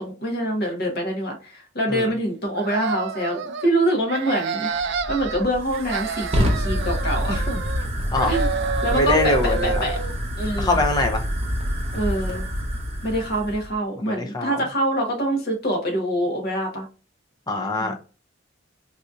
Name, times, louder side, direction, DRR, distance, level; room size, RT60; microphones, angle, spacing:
voice 1, 0.0-4.7 5.1-7.5 8.2-8.5 8.8-10.0 10.4-10.8 11.9-12.4 13.0-16.9 17.8-18.0, right 1 dB, 55° left, 1.1 m, -25 dB
sound 1, 2.5-3.7 4.1-5.4 5.7-7.9 8.1-10.1, right 5 dB, 60° right, 0.4 m, -29 dB
Fire, 4.8-13.7, equal, 30° right, 0.8 m, -27 dB
voice 2, 7.3-7.8 8.1-8.3 8.9-9.8 10.6-11.3 14.0-14.6 17.5-18.0, left 2 dB, 20° left, 0.6 m, -24 dB
4.0 x 2.7 x 2.4 m
head